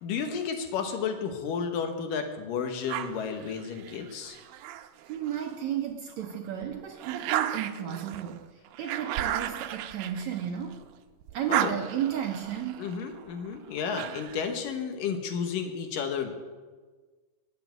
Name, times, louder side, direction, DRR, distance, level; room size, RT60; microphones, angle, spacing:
voice 1, 0.0-4.4 11.5-11.7 12.8-16.3, left 6 dB, 75° left, 6 dB, 2.7 m, -32 dB
sound 1, 2.9-5.6 6.1-10.9 11.2-14.5, right 12 dB, 90° right, 2.4 m, -35 dB
voice 2, 5.0-10.8 11.3-12.9, right 9 dB, 70° right, 3 dB, 1.8 m, -33 dB
13.5 x 7.3 x 9.2 m, 1.4 s
omnidirectional pair, 4.1 m